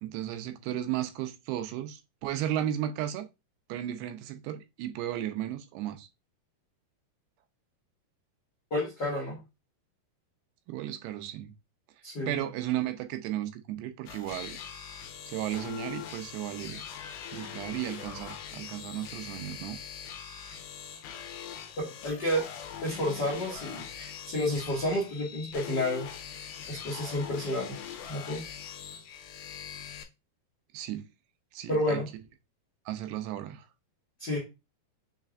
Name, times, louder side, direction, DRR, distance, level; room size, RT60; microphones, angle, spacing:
voice 1, 0.0-3.3 3.7-6.1 10.7-11.5 12.3-14.6 15.3-16.9 17.3-19.8 30.7-31.0 31.5-32.0 32.9-33.7, right 12 dB, 90° right, 2.7 m, -34 dB
voice 2, 8.7-9.4 12.0-12.4 21.8-22.4 22.8-26.1 26.7-27.8 28.1-28.4 31.7-32.1 34.2-34.4, left 1 dB, 55° left, 1.1 m, -30 dB
sound 1, 14.1-30.0, left 8 dB, 80° left, 2.5 m, -42 dB
6.5 x 3.3 x 2.4 m
omnidirectional pair, 4.6 m